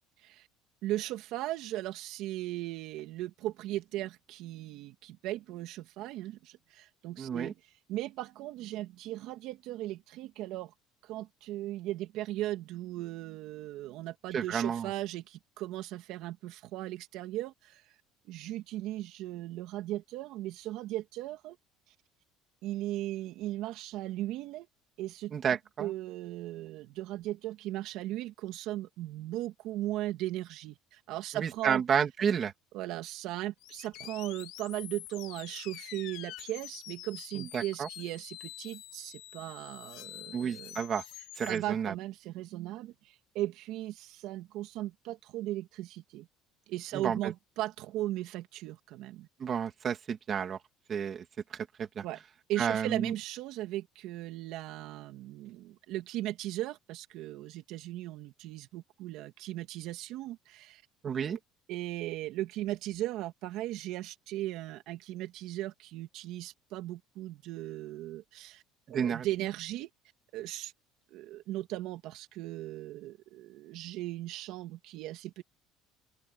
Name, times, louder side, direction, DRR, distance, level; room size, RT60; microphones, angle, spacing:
voice 1, 0.8-7.5 7.9-10.7 11.0-17.8 18.2-21.6 22.6-24.7 25.0-25.3 25.8-31.8 32.7-40.8 41.5-46.3 46.7-49.3 52.0-52.2 52.5-60.8 61.2-61.4 61.7-68.6 68.9-69.9 70.3-70.7 71.1-75.4, right 15 dB, 60° right, 2.6 m, -37 dB
voice 2, 7.2-7.5 14.3-14.9 25.3-25.9 31.3-32.5 37.4-37.9 40.3-41.0 41.4-41.9 46.9-47.2 49.4-50.6 50.9-51.2 51.5-52.0 52.6-53.1 61.0-61.4 68.9-69.3, right 7 dB, 30° right, 2.1 m, -31 dB
sound 1, 33.6-41.6, left 17 dB, 60° left, 4.6 m, -47 dB
open air
cardioid pair, 175°, 0 cm